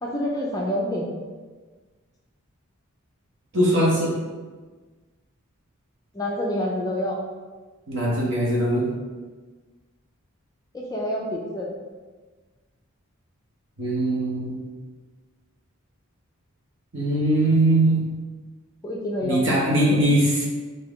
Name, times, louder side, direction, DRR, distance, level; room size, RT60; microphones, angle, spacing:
voice 1, 0.0-1.1 6.1-7.2 10.7-11.7 18.8-19.4 19.9-20.0, left 1 dB, 15° left, -3 dB, 0.4 m, -27 dB
voice 2, 3.5-4.1 7.9-8.9 13.8-14.6 16.9-18.1 19.2-20.4, right 1 dB, 60° right, -4 dB, 1.0 m, -21 dB
3.6 x 2.7 x 3.6 m, 1.4 s
head